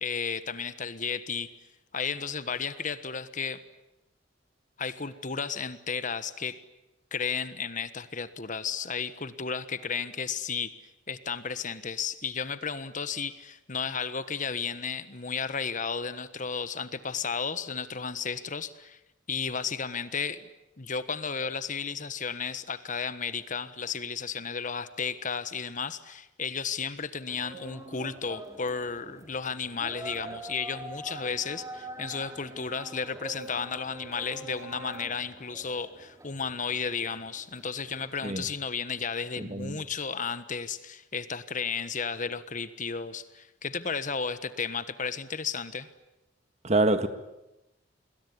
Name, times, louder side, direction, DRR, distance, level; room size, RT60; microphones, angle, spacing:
voice 1, 0.0-1.5 1.9-3.6 4.8-6.6 7.1-10.7 11.1-19.0 19.3-20.5 20.8-45.9, left 5 dB, 45° left, 1.3 m, -33 dB
sound 1, 27.3-38.2, right 1 dB, 15° right, 2.9 m, -45 dB
voice 2, 39.4-39.8 46.6-47.1, right 2 dB, 35° right, 1.7 m, -25 dB
27.5 x 22.0 x 10.0 m
head